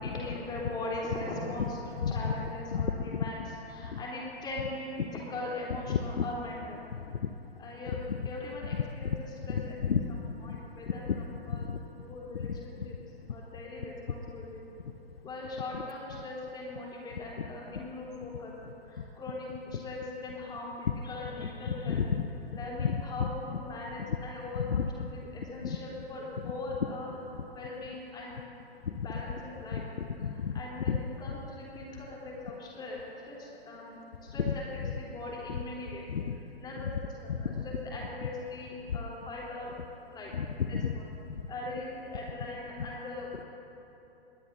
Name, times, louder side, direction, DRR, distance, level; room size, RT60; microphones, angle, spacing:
voice 1, 0.0-1.8 2.1-3.4 3.7-6.8 7.6-8.0 8.2-9.8 10.4-11.7 12.0-12.9 13.3-14.6 15.2-18.5 18.8-22.0 22.5-24.9 25.1-27.1 27.5-28.4 29.0-29.8 30.3-34.0 34.3-34.6 35.0-36.0 36.6-36.9 37.2-39.8 40.1-40.3 40.7-41.0 41.5-43.5, left 2 dB, 15° left, -4 dB, 3.7 m, -40 dB
voice 2, 2.0-2.3 2.7-3.5 3.9-4.0 5.0-5.1 5.9-6.2 6.9-7.3 7.9-8.3 8.6-10.6 10.9-11.2 11.5-11.8 12.3-12.9 15.7-15.8 17.4-17.5 19.7-19.8 21.4-22.2 22.8-23.6 24.0-24.2 24.5-25.1 25.6-25.8 26.4-26.5 28.8-29.2 29.7-30.5 30.9-31.0 34.5-34.6 34.8-34.9 35.5-35.6 36.1-36.4 36.8-36.9 37.3-37.8 38.2-38.3 40.3-40.9 42.8-42.9, left 6 dB, 70° left, 8 dB, 0.8 m, -33 dB
21.0 x 21.0 x 2.8 m, 3.0 s
figure-of-eight pair, 120°, 31 cm